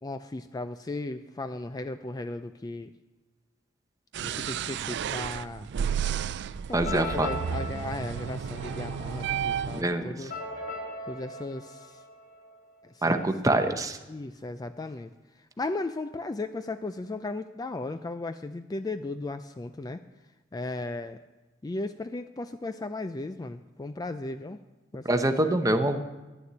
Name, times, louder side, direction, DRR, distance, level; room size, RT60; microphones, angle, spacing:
voice 1, 0.0-2.9 4.2-5.7 6.7-10.3 11.1-12.0 12.8-13.2 14.1-15.1 15.6-20.0 20.5-21.2 21.6-24.6 24.9-25.6, left 2 dB, 20° left, 10 dB, 0.3 m, -36 dB
sound 1, 4.1-9.8, right 8 dB, 60° right, 0.3 m, -32 dB
voice 2, 6.7-7.3 9.7-10.3 13.0-14.0 25.0-26.0, right 1 dB, 15° right, 7 dB, 0.8 m, -25 dB
sound 2, 6.8-12.6, left 1 dB, 60° left, 3.5 m, -40 dB
11.0 x 6.9 x 9.5 m, 1.1 s
head